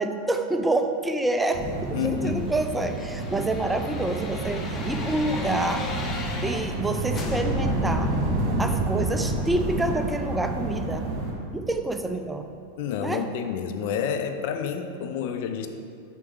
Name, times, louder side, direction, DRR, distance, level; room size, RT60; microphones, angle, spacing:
voice 1, 0.0-5.9 6.4-8.2 8.6-11.1 11.5-12.5 13.0-13.2, right 2 dB, 10° right, 6 dB, 0.4 m, -27 dB
sound 1, 1.5-11.3, right 2 dB, 35° right, 1.5 m, -29 dB
voice 2, 1.9-2.5 12.8-15.7, left 7 dB, 50° left, 7 dB, 0.5 m, -29 dB
sound 2, 2.1-6.8 7.1-12.0 12.3-12.4, left 2 dB, 20° left, 0.7 m, -36 dB
6.4 x 5.2 x 4.7 m, 2.5 s
figure-of-eight pair, 90°, 0 cm